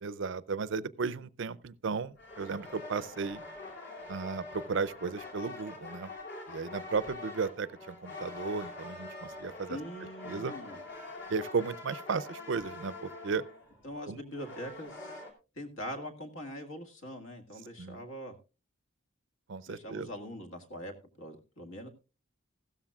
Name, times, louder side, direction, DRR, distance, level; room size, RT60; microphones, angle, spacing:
voice 1, 0.0-3.4 4.1-6.1 6.5-9.8 10.2-10.5 11.3-13.4 14.1-14.2 17.8-18.0 19.5-20.1, right 5 dB, 60° right, 0.5 m, -35 dB
sound 1, 2.2-15.3, left 2 dB, 55° left, 2.8 m, -45 dB
voice 2, 9.7-10.8 13.8-15.2 15.6-18.4 19.7-21.9, equal, 70° left, 1.8 m, -43 dB
15.5 x 13.0 x 2.3 m
head